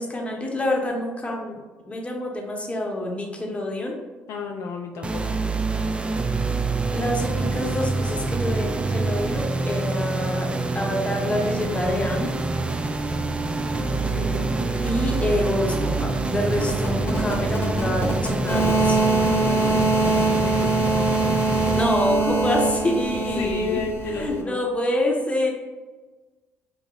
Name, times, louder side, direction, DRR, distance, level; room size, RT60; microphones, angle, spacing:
voice 1, 0.0-1.6 1.9-4.0 6.9-12.3 14.8-19.0 21.7-23.8 24.1-25.5, left 1 dB, 20° left, 0 dB, 0.8 m, -26 dB
voice 2, 4.3-5.4 14.1-14.5 19.1-21.1 23.4-24.6, left 4 dB, 65° left, 1 dB, 0.3 m, -32 dB
sound 1, 5.0-21.9, right 3 dB, 20° right, 0.3 m, -26 dB
sound 2, 13.7-23.1, right 2 dB, 65° right, 0.8 m, -38 dB
sound 3, 16.5-24.4, right 3 dB, 45° left, 1.0 m, -24 dB
5.1 x 2.0 x 2.3 m, 1.3 s
hypercardioid pair, 60°, 6 cm